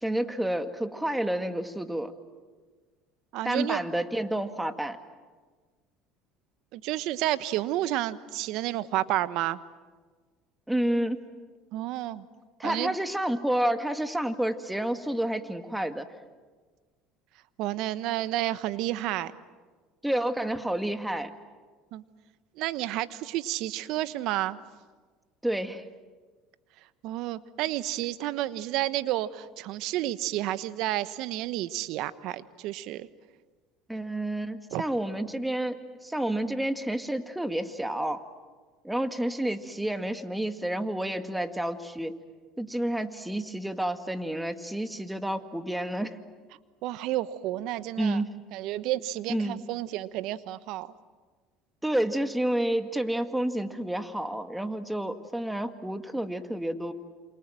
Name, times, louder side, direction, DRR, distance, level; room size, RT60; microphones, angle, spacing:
voice 1, 0.0-2.1 3.4-5.0 10.7-11.2 12.6-16.1 20.0-21.3 25.4-25.8 33.9-38.2 38.8-42.2 42.6-46.2 48.0-48.4 49.3-49.7 51.8-56.9, right 1 dB, 5° right, 9 dB, 2.0 m, -30 dB
voice 2, 3.3-3.8 6.7-9.6 11.7-12.2 12.6-13.0 17.6-19.3 21.9-22.0 22.6-24.6 27.0-33.1 34.7-34.8 46.8-48.2 48.5-50.9, right 14 dB, 65° right, 14 dB, 1.2 m, -30 dB
28.5 x 27.0 x 7.7 m, 1.4 s
supercardioid pair, 90°, 0 cm